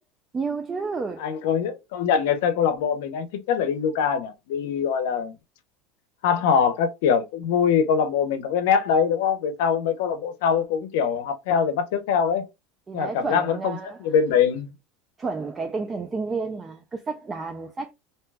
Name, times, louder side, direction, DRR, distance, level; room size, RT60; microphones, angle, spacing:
voice 1, 0.3-1.3 12.9-14.0 15.2-17.9, right 4 dB, 15° right, 0.3 m, -31 dB
voice 2, 1.2-5.3 6.2-12.5 12.9-14.7, left 7 dB, 75° left, 0.6 m, -23 dB
2.8 x 2.2 x 3.3 m
supercardioid pair, 155°, 0 cm